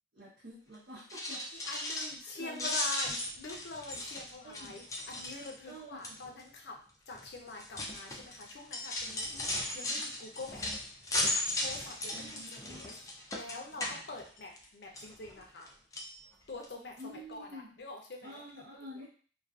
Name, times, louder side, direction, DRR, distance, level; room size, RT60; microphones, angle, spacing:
voice 1, 0.1-1.7 2.2-2.7 4.4-4.7 5.7-6.2 9.2-9.3 9.6-10.0 12.1-12.9 13.8-14.0 17.0-17.7 18.2-19.1, equal, 70° right, -9 dB, 0.8 m, -49 dB
sound 1, 1.0-2.3 2.5-5.7 6.0-6.4 7.1-14.6 15.0-15.7 15.9-16.1 16.6-16.7 17.0-17.1, left 1 dB, 20° left, 0.3 m, -36 dB
voice 2, 1.6-6.8 7.1-10.7 11.3-12.9 13.3-15.7 16.5-18.4, left 3 dB, 70° left, 1 dB, 0.5 m, -45 dB
2.4 x 2.3 x 2.3 m, 0.42 s
head